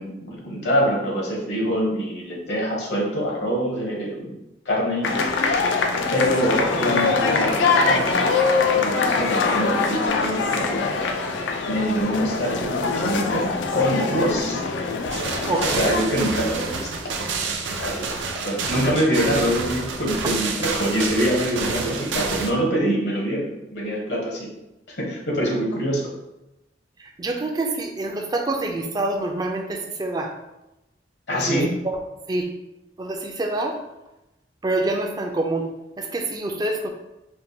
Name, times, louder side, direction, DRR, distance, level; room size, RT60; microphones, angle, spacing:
voice 1, 0.0-4.4 4.6-5.6 6.1-8.3 8.7-10.8 11.7-14.6 15.6-17.1 17.8-24.5 24.9-26.1 31.3-31.7, equal, 70° left, -2 dB, 0.9 m, -25 dB
sound 1, 5.0-16.0, left 4 dB, 85° left, 0.4 m, -23 dB
sound 2, 15.1-22.5, right 4 dB, 90° right, 0.5 m, -28 dB
voice 2, 15.5-16.0 20.2-20.3 27.0-30.3 31.3-32.0 32.3-32.5 33.0-33.8 34.6-35.7 36.0-36.9, right 2 dB, 20° right, 3 dB, 0.4 m, -26 dB
4.4 x 2.2 x 2.7 m, 0.94 s
head